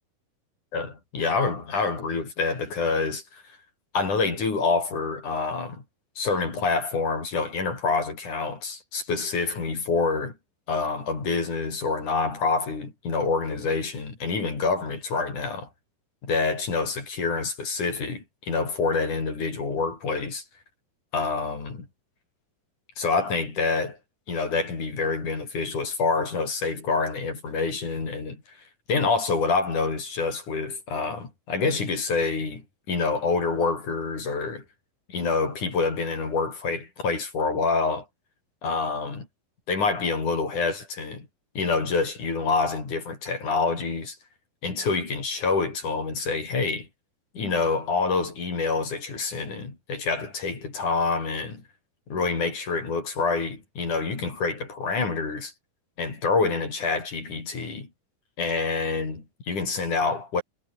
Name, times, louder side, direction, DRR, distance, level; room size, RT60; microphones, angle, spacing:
voice 1, 0.7-3.4 3.9-5.8 6.2-10.3 10.7-15.7 16.2-20.4 21.1-21.9 23.0-24.0 24.3-28.4 28.9-34.6 35.1-38.1 38.6-39.3 39.7-41.3 41.6-44.2 44.6-46.9 47.4-51.6 52.1-55.5 56.0-57.9 58.4-60.4, left 4 dB, 55° left, 7.1 m, -27 dB
omnidirectional pair, 4.3 m